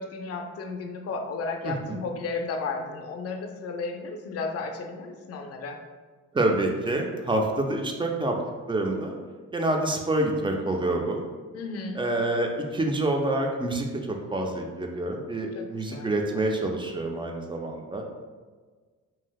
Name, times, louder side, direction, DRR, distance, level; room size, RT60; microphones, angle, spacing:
voice 1, 0.0-5.8 11.5-12.0 15.5-16.1, left 4 dB, 55° left, 4 dB, 0.5 m, -33 dB
voice 2, 1.6-2.0 6.3-8.4 8.7-9.2 9.5-11.3 12.0-18.1, right 2 dB, 15° right, 2 dB, 0.4 m, -27 dB
3.1 x 2.7 x 2.3 m, 1.4 s
cardioid pair, 90°, 30 cm